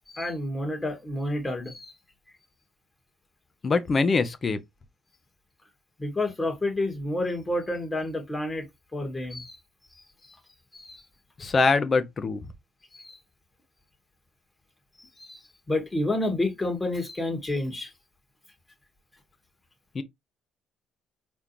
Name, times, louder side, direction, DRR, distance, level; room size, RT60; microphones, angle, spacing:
voice 1, 0.1-1.9 6.0-9.6 10.2-10.4 10.7-11.0 12.9-13.2 15.0-15.4 15.7-17.9, left 1 dB, 20° left, 2.4 m, -30 dB
voice 2, 3.6-4.6 11.4-12.4 19.9-20.0, left 4 dB, 35° left, 1.1 m, -23 dB
4.8 x 3.7 x 3.0 m
supercardioid pair, 80°, 0 cm